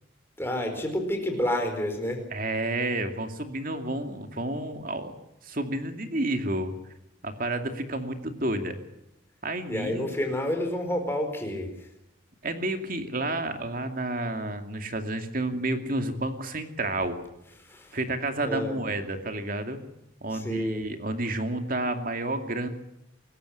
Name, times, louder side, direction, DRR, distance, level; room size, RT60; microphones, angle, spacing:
voice 1, 0.4-2.2 9.7-11.7 17.6-18.0 18.4-18.8 20.3-20.8, left 1 dB, 10° left, 3 dB, 4.5 m, -29 dB
voice 2, 2.3-5.1 5.4-6.7 7.2-8.8 9.4-10.1 12.4-17.2 17.9-19.8 20.2-22.7, right 2 dB, 45° right, 6 dB, 2.5 m, -30 dB
25.5 x 14.5 x 9.9 m, 0.84 s
head